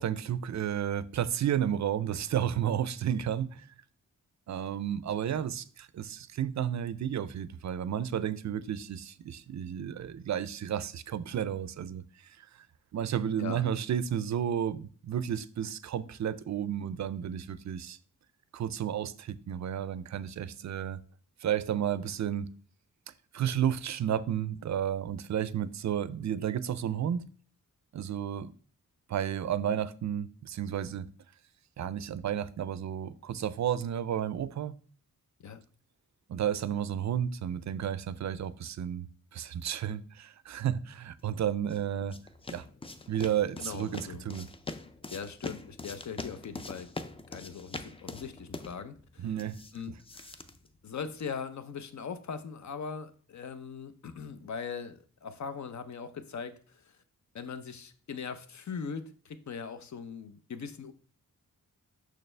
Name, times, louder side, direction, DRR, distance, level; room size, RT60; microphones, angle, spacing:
voice 1, 0.0-3.7 4.5-12.5 12.9-18.0 18.5-21.0 21.4-22.5 23.3-27.3 27.9-28.5 29.1-31.1 31.8-34.7 36.3-42.2 42.5-42.6 43.1-44.5 49.2-49.6, right 9 dB, 55° right, 0.5 m, -32 dB
voice 2, 13.4-13.7 35.4-35.6 43.6-44.3 45.1-46.9 47.3-49.3 49.7-49.9 50.8-57.0 57.3-60.9, left 6 dB, 55° left, 0.7 m, -40 dB
sound 1, 41.4-51.4, left 3 dB, 15° left, 0.4 m, -44 dB
6.6 x 6.2 x 3.3 m
wide cardioid pair, 160°, 34 cm